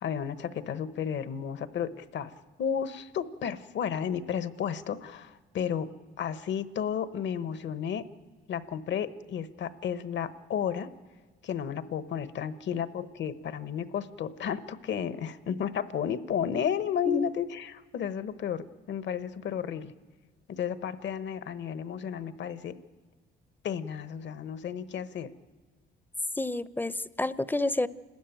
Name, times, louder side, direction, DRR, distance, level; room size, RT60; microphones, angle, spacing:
voice 1, 0.0-2.3 2.6-5.9 6.2-8.0 8.5-10.9 11.4-19.9 20.5-22.7 23.6-25.3, left 8 dB, 65° left, 13 dB, 1.1 m, -33 dB
voice 2, 26.4-27.9, left 2 dB, 10° left, 17 dB, 0.6 m, -29 dB
28.5 x 13.0 x 9.1 m, 1.4 s
cardioid pair, 90°, 20 cm